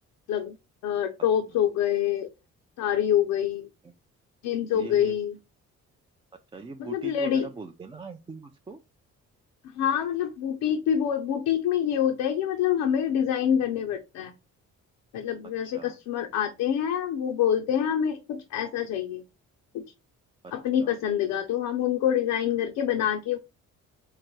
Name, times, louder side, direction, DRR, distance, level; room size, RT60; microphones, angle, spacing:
voice 1, 0.8-2.3 2.8-3.7 4.4-5.4 6.8-7.5 9.6-14.3 15.1-19.2 19.7-19.8 20.5-23.4, left 9 dB, 90° left, 0.6 m, -26 dB
voice 2, 4.7-5.2 6.5-8.8 15.7-16.0 20.8-21.0, right 3 dB, 20° right, 0.3 m, -41 dB
4.6 x 2.1 x 3.0 m
cardioid pair, 90°, 30 cm